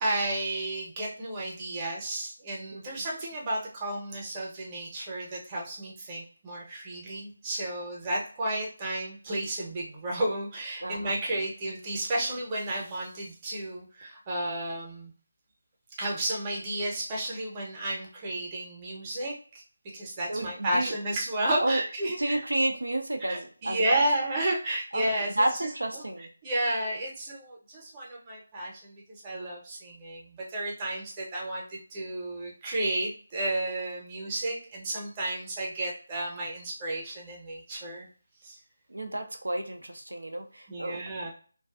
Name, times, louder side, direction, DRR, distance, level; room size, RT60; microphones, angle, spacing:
voice 1, 0.0-15.1 16.0-19.6 19.9-22.4 23.2-38.1 38.4-38.6 40.7-41.3, right 1 dB, 20° right, -3 dB, 0.7 m, -32 dB
voice 2, 2.7-3.0 10.8-11.2 20.3-20.9 21.6-21.8 22.2-24.0 24.9-25.1 25.4-26.3 38.9-41.0, right 1 dB, 85° right, 4 dB, 0.4 m, -31 dB
2.4 x 2.3 x 2.3 m, 0.41 s
figure-of-eight pair, 160°, 0 cm